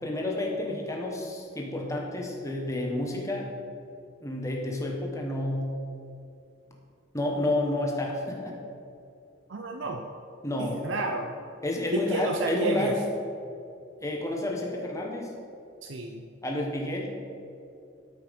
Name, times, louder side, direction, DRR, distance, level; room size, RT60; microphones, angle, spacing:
voice 1, 0.0-3.5 4.2-5.7 7.1-8.5 10.4-10.8 11.6-13.0 14.0-15.3 16.4-17.1, left 1 dB, 15° left, -1 dB, 1.4 m, -30 dB
voice 2, 9.5-10.1 10.6-11.3 11.9-13.0 15.8-16.3, right 2 dB, 80° right, 3 dB, 0.6 m, -31 dB
12.5 x 5.8 x 5.3 m, 2.6 s
head